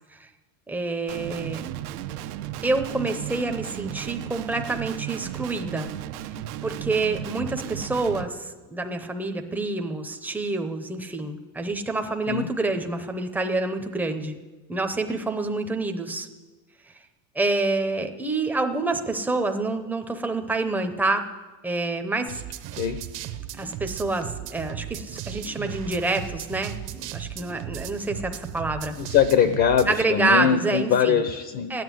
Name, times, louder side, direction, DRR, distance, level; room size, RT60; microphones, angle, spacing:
voice 1, 0.7-1.7 2.6-5.9 6.6-14.4 14.7-16.3 17.4-21.2 21.6-22.4 23.6-29.0 29.9-31.2 31.7-31.8, right 3 dB, 5° right, 5 dB, 0.7 m, -27 dB
Guitar, 1.1-8.2, right 12 dB, 85° right, 0.9 m, -35 dB
sound 1, 22.3-30.0, right 12 dB, 45° right, 0.9 m, -36 dB
voice 2, 29.0-31.7, left 8 dB, 40° left, 9 dB, 0.8 m, -22 dB
13.0 x 9.2 x 9.3 m, 1.2 s
cardioid pair, 155°, 44 cm